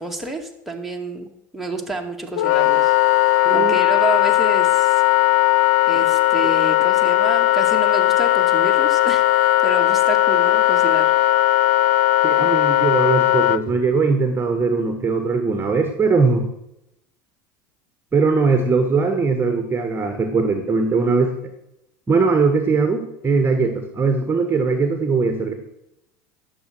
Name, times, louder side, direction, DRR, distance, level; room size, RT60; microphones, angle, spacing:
voice 1, 0.0-5.0 5.9-11.1, right 2 dB, ahead, 0 dB, 2.3 m, -29 dB
Wind instrument woodwind instrument, 2.4-13.6, left 16 dB, 70° left, 0.5 m, -17 dB
voice 2, 3.4-3.8 6.4-6.6 12.2-16.5 18.1-21.3 22.1-25.5, right 4 dB, 20° right, 6 dB, 1.6 m, -20 dB
11.5 x 7.2 x 6.2 m, 0.84 s
hypercardioid pair, 90°, 10 cm